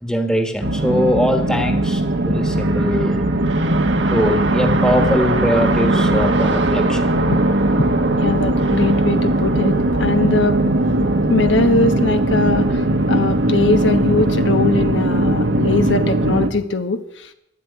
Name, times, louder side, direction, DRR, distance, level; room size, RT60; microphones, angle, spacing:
voice 1, 0.0-3.2 4.1-7.2, equal, 5° left, 4 dB, 1.3 m, -21 dB
sound 1, 0.6-16.5, right 1 dB, 85° right, 1.3 m, -18 dB
voice 2, 8.2-17.3, left 3 dB, 90° left, 8 dB, 1.2 m, -21 dB
12.0 x 9.7 x 9.2 m, 0.82 s
head